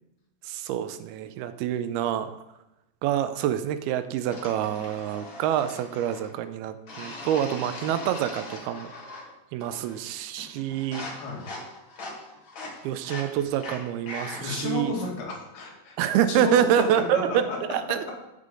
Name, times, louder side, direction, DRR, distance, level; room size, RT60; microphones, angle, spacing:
voice 1, 0.4-2.4 3.0-11.1 12.8-14.9 16.0-17.4 17.7-18.1, right 10 dB, 85° right, 10 dB, 2.5 m, -27 dB
sound 1, 4.3-6.3 6.9-9.3 9.6-10.1 10.4-14.7, left 2 dB, 50° left, 1.6 m, -40 dB
voice 2, 11.1-11.5 14.4-16.0 16.3-17.6, left 4 dB, 75° left, -2 dB, 3.7 m, -32 dB
14.0 x 5.6 x 3.7 m, 0.95 s
omnidirectional pair, 4.5 m